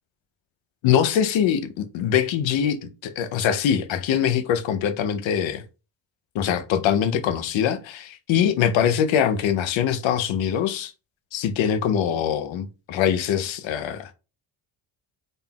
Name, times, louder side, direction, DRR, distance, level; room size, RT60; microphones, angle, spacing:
voice 1, 0.8-5.6 6.3-10.9 11.3-14.1, left 9 dB, 80° left, 0.7 m, -23 dB
3.9 x 3.7 x 2.3 m
cardioid pair, 110°, 46 cm